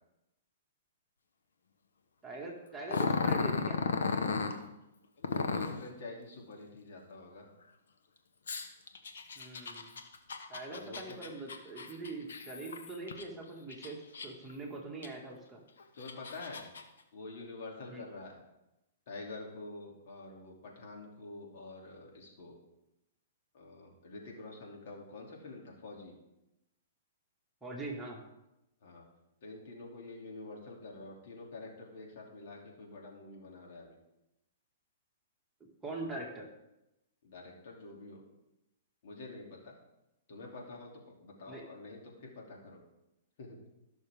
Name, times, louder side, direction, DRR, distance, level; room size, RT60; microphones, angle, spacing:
voice 1, 2.2-3.8 9.4-9.9 10.5-15.6 17.9-18.1 27.6-28.2 35.8-36.5 41.5-41.6, right 2 dB, 10° right, -3 dB, 2.1 m, -43 dB
Growling, 2.9-4.6 5.2-5.8 8.5-13.2 13.7-14.5 15.0-15.1 15.8-16.8, left 4 dB, 85° left, 1.2 m, -34 dB
voice 2, 5.2-7.5 10.7-11.2 16.0-16.6 17.1-18.4 19.1-22.6 23.5-26.1 28.8-29.0 29.4-34.0 37.2-38.2 39.0-39.7 40.3-42.8 43.4-43.6, left 2 dB, 60° left, -1 dB, 2.9 m, -47 dB
17.0 x 6.3 x 3.6 m, 0.91 s
hypercardioid pair, 140°, 0 cm